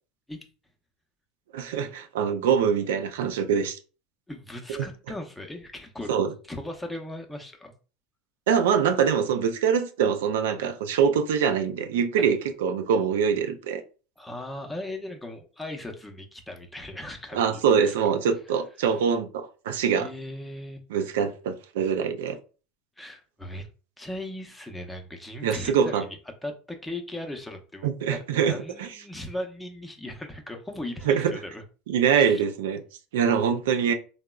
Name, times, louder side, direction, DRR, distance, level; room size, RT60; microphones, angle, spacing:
voice 1, 1.5-3.8 4.8-4.9 6.1-6.3 8.5-13.8 17.3-20.1 20.9-22.4 25.4-26.0 27.8-28.9 31.0-31.3 31.9-32.8 33.1-33.9, right 7 dB, 80° right, 0.3 m, -24 dB
voice 2, 4.3-6.1 6.5-7.7 12.2-12.3 14.2-17.6 17.9-18.0 18.8-18.9 19.9-20.8 23.0-23.7 24.0-26.2 26.4-31.6 32.1-32.4, left 1 dB, 5° left, 0.6 m, -38 dB
3.5 x 2.0 x 2.3 m
hypercardioid pair, 100°, 0 cm